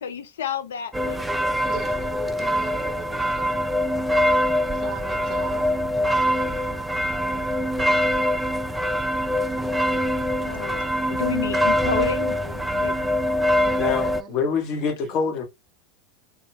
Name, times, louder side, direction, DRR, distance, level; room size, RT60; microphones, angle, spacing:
voice 1, 0.0-1.3 10.0-13.1, left 7 dB, 75° left, 0.4 m, -31 dB
sound 1, 0.9-14.2, equal, 5° right, 0.3 m, -23 dB
voice 2, 1.6-3.8 4.7-8.3 13.5-14.4, right 6 dB, 35° right, 0.6 m, -41 dB
voice 3, 13.8-15.5, left 5 dB, 50° left, 0.8 m, -25 dB
2.3 x 2.0 x 3.1 m
hypercardioid pair, 90°, 0 cm